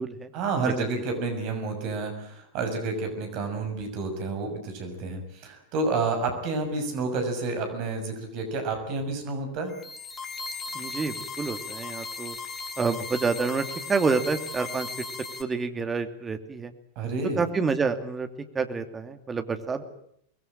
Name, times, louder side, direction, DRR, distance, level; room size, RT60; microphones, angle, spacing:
voice 1, 0.3-9.7 16.9-17.4, right 3 dB, 45° right, 5 dB, 6.5 m, -30 dB
sound 1, 9.7-15.4, left 4 dB, 20° left, 3.0 m, -37 dB
voice 2, 10.7-12.3 12.8-14.9 15.4-16.7 17.4-18.3 18.5-19.8, right 4 dB, 15° right, 7 dB, 2.7 m, -28 dB
24.5 x 21.0 x 8.9 m, 0.69 s
figure-of-eight pair, 90°, 0 cm